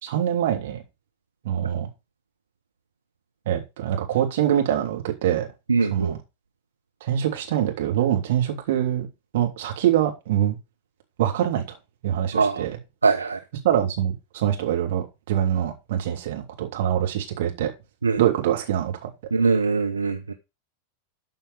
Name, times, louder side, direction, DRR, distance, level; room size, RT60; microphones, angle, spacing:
voice 1, 0.0-0.8 1.4-1.9 3.4-5.5 5.9-6.2 7.0-9.1 9.3-10.6 11.2-11.8 12.0-12.8 13.6-17.7 18.2-19.1, right 10 dB, 55° right, 3.1 m, -24 dB
voice 2, 5.7-6.1 12.3-12.6 13.0-13.4 18.0-18.2 19.3-20.3, right 4 dB, 75° right, 0.8 m, -22 dB
12.5 x 5.6 x 4.9 m
figure-of-eight pair, 90°, 0 cm